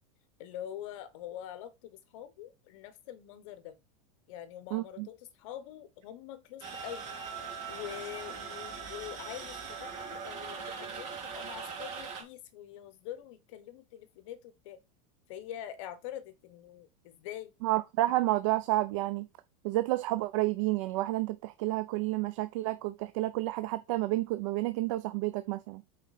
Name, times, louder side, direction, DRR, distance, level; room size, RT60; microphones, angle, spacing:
voice 1, 0.4-3.8 4.3-7.2 7.7-14.8 15.3-17.5, left 11 dB, 65° left, 1.2 m, -44 dB
voice 2, 4.7-5.1 17.6-19.3 19.6-25.8, right 18 dB, 60° right, 0.5 m, -30 dB
sound 1, 6.6-12.2, right 6 dB, 40° right, 2.6 m, -41 dB
8.2 x 4.2 x 4.2 m
supercardioid pair, 160°, 18 cm